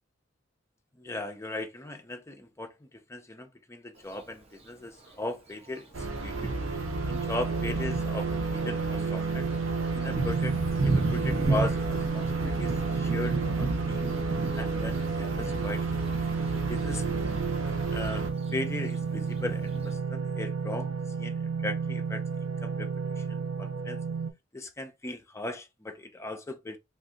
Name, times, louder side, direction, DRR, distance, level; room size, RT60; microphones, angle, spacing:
voice 1, 1.0-6.5 7.1-9.5 9.9-10.5 10.8-14.1 14.5-16.0 16.5-17.0 17.6-18.3 18.5-22.9 23.2-24.0 24.5-26.8, left 1 dB, 15° left, 0.5 m, -38 dB
Thunder, 4.0-4.1 5.1-5.2 5.7-5.8 6.2-20.0, right 3 dB, 30° right, 0.8 m, -35 dB
sound 1, 5.9-18.3, right 2 dB, 90° right, 0.8 m, -34 dB
sound 2, 6.6-24.3, right 5 dB, 65° right, 0.4 m, -32 dB
2.6 x 2.5 x 3.7 m
head